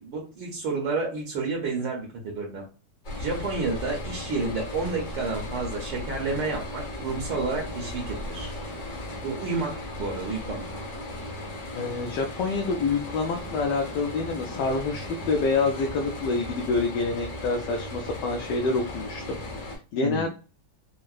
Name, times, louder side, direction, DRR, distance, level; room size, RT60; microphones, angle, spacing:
voice 1, 0.0-2.6 3.2-8.5 9.2-10.6 20.0-20.3, right 3 dB, 70° right, 0 dB, 1.4 m, -30 dB
sound 1, 3.0-19.8, left 1 dB, 45° left, 1.3 m, -36 dB
voice 2, 11.7-20.3, left 3 dB, 75° left, 2 dB, 1.1 m, -27 dB
4.5 x 2.0 x 2.3 m, 0.35 s
omnidirectional pair, 2.1 m